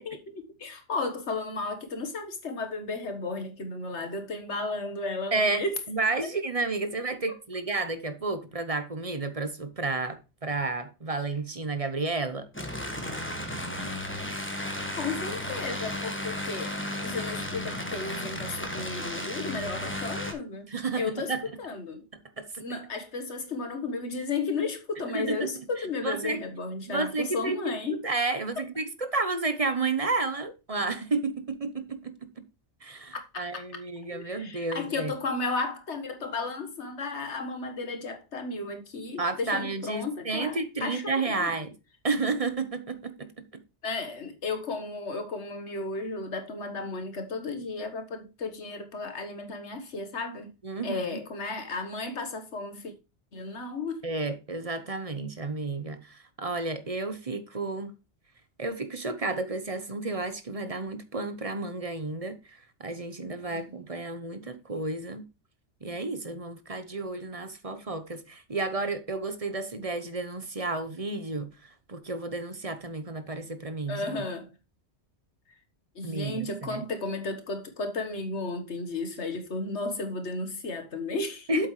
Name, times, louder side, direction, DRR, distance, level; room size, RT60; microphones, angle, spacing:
voice 1, 0.0-5.8 14.6-14.7 15.0-20.7 20.9-22.0 22.6-28.0 28.6-28.7 33.1-33.6 34.1-41.6 43.8-50.5 50.8-52.9 53.3-54.0 63.5-63.6 73.9-74.5 75.9-81.7, left 3 dB, 70° left, 1.7 m, -34 dB
voice 2, 5.3-12.5 20.7-21.4 22.4-22.6 25.1-25.5 26.0-26.4 26.9-32.4 32.8-35.1 39.2-41.7 42.0-43.4 50.6-51.2 54.0-57.9 58.6-65.3 65.8-74.1 76.0-76.8 81.5-81.7, right 3 dB, 35° right, 1.0 m, -31 dB
sound 1, 12.5-20.3, left 1 dB, 10° left, 1.6 m, -34 dB
8.5 x 7.7 x 3.1 m
omnidirectional pair, 1.2 m